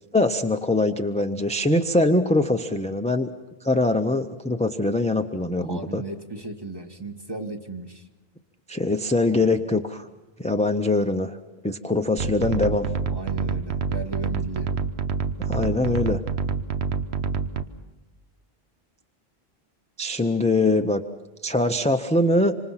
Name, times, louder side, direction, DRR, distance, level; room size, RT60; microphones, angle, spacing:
voice 1, 0.1-3.3 3.6-6.0 8.7-10.1 10.4-11.4 11.6-12.9 15.4-16.2 20.0-21.0 21.4-22.6, left 2 dB, 10° left, 7 dB, 0.6 m, -22 dB
voice 2, 5.6-8.0 9.3-9.6 13.1-14.7, right 3 dB, 25° right, 5 dB, 1.5 m, -36 dB
sound 1, 12.2-17.6, right 5 dB, 90° right, 1.2 m, -27 dB
26.5 x 26.0 x 5.7 m, 1.1 s
omnidirectional pair, 1.1 m